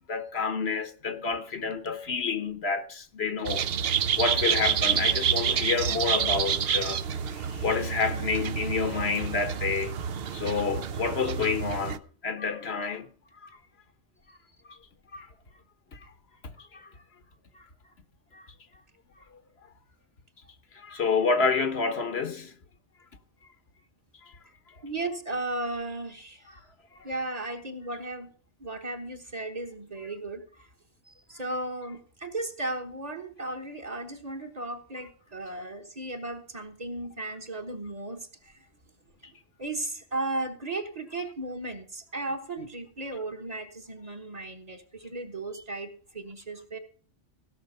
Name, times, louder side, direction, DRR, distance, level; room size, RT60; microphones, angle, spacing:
voice 1, 0.1-3.7 4.2-7.0 7.3-10.0 10.3-13.1 13.4-13.5 15.1-15.3 15.9-16.1 16.6-16.9 17.5-17.6 18.3-18.4 20.7-22.5 24.2-24.3 26.9-27.1, left 4 dB, 60° left, 1.3 m, -29 dB
sound 1, 3.5-12.0, right 8 dB, 60° right, 0.9 m, -28 dB
voice 2, 24.8-26.5 27.0-28.3 28.6-30.4 31.1-38.7 39.6-46.8, right 2 dB, 35° right, 1.3 m, -35 dB
16.5 x 5.9 x 6.8 m
omnidirectional pair, 1.2 m